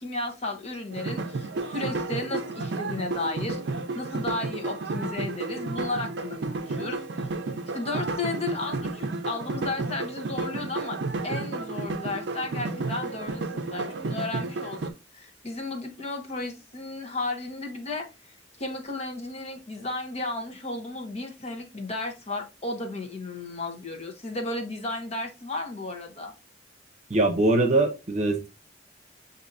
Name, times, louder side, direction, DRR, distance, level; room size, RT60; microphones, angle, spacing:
voice 1, 0.0-3.6 3.9-7.0 7.7-11.0 11.2-18.1 18.6-26.3, left 2 dB, 35° left, 1.0 m, -34 dB
sound 1, 0.9-14.9, right 3 dB, 70° right, 0.5 m, -32 dB
voice 2, 27.1-28.5, right 2 dB, 40° right, 0.8 m, -22 dB
6.7 x 2.7 x 2.6 m
head